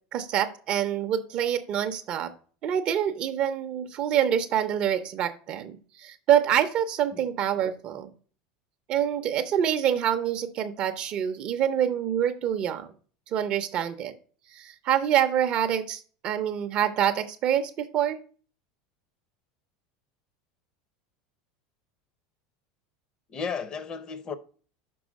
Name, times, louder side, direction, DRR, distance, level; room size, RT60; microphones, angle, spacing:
voice 1, 0.1-2.3 2.6-8.1 8.9-12.9 13.3-14.1 14.5-18.2, right 9 dB, 35° right, 0.5 m, -26 dB
voice 2, 23.3-24.3, left 6 dB, 20° left, 0.5 m, -34 dB
6.1 x 4.2 x 6.2 m
supercardioid pair, 165°, 3 cm